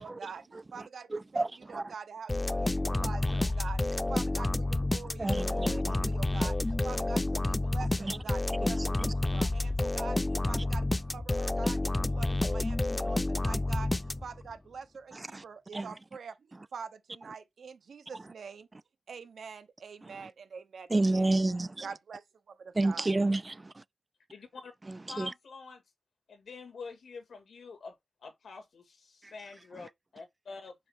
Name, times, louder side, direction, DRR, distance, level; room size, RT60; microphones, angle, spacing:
voice 1, 0.0-18.7 19.1-21.4 21.8-23.1, right 6 dB, 90° right, 0.9 m, -45 dB
voice 2, 1.1-1.8 5.2-5.9 8.0-8.2 8.6-8.7 15.1-15.4 15.7-15.9 20.0-20.1 20.9-21.9 22.8-23.8 24.9-25.3 29.2-29.3, right 2 dB, 30° right, 0.3 m, -30 dB
sound 1, 2.3-14.5, left 2 dB, 20° left, 0.5 m, -29 dB
voice 3, 24.3-24.7 25.1-25.8 26.3-30.8, left 4 dB, 85° left, 2.0 m, -47 dB
5.4 x 5.2 x 3.6 m
wide cardioid pair, 80°, 0 cm